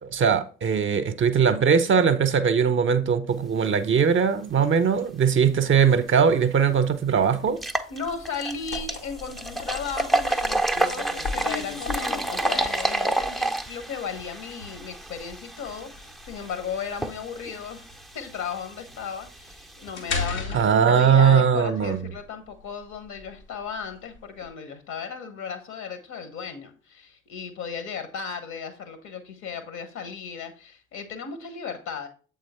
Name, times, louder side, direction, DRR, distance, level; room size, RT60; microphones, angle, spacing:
voice 1, 0.0-7.6 20.5-22.0, right 6 dB, 35° right, 0.7 m, -20 dB
sound 1, 6.2-6.3 6.8-6.9 7.5-20.2, right 2 dB, ahead, 0.6 m, -30 dB
voice 2, 7.9-17.9 18.1-32.1, left 6 dB, 60° left, 1.4 m, -35 dB
sound 2, 8.0-24.5, left 3 dB, 80° left, 1.5 m, -37 dB
7.8 x 3.8 x 4.3 m
figure-of-eight pair, 50°, 33 cm